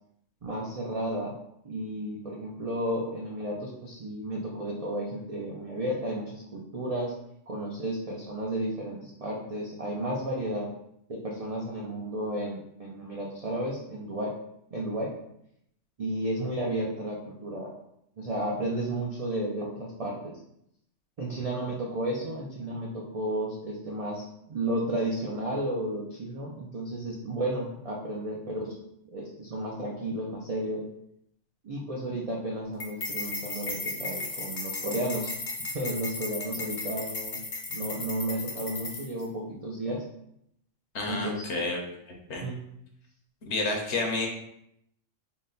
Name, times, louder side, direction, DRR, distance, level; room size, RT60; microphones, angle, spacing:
voice 1, 0.4-1.4 1.6-7.1 7.5-10.7 11.1-14.3 14.7-15.1 16.0-17.7 18.2-20.4 21.2-28.8 29.1-30.8 31.6-35.3 35.6-37.4 37.7-40.0 41.1-41.6 42.4-42.6, right 1 dB, 55° right, -3 dB, 0.4 m, -33 dB
sound 1, 32.8-39.2, left 3 dB, 45° left, 0.6 m, -35 dB
voice 2, 40.9-41.8 42.3-42.4 43.4-44.3, left 3 dB, 65° left, 1 dB, 1.0 m, -29 dB
3.9 x 2.1 x 3.8 m, 0.76 s
omnidirectional pair, 1.3 m